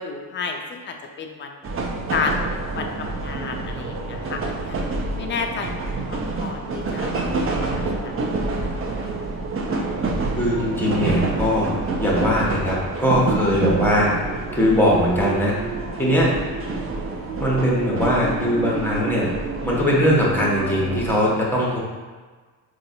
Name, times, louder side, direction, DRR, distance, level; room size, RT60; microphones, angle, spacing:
voice 1, 0.0-1.6 2.1-4.8 5.2-8.1 8.6-9.1, left 4 dB, 30° left, 3 dB, 0.4 m, -31 dB
sound 1, 1.6-21.2, right 3 dB, 30° right, 0.5 m, -27 dB
voice 2, 10.4-11.7 12.0-14.1 14.5-15.5 16.0-16.3 17.4-19.3 19.6-21.8, equal, 5° left, -5 dB, 1.0 m, -20 dB
3.9 x 2.5 x 2.6 m, 1.4 s
supercardioid pair, 70°, 43 cm